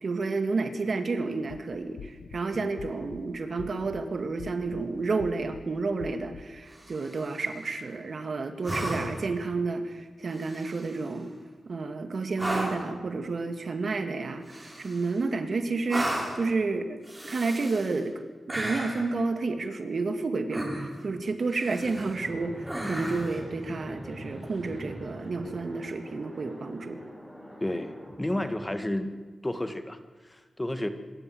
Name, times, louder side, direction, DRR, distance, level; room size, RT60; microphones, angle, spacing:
voice 1, 0.0-11.3 11.7-17.0 17.2-18.1 18.5-27.0, right 3 dB, 65° right, 8 dB, 2.1 m, -30 dB
sound 1, 1.4-1.6 2.0-2.4 2.8-3.2 3.6-4.0 4.4-4.8 5.2-5.6 6.0-6.4, left 7 dB, 85° left, 1.2 m, -44 dB
sound 2, 6.7-7.4 8.6-9.3 10.3-11.0 12.4-12.9 14.5-15.2 15.9-16.5 17.0-18.0 18.5-19.1 20.5-21.1 21.5-22.2 22.7-23.4 25.3-25.4, right 1 dB, 15° right, 7.1 m, -34 dB
Fixed-wing aircraft airplane, 21.8-28.8, equal, ahead, 6.8 m, -43 dB
voice 2, 27.6-29.1 29.4-30.9, left 1 dB, 20° left, 9 dB, 2.2 m, -32 dB
25.5 x 13.5 x 7.9 m, 1.3 s
cardioid pair, 40°, 0 cm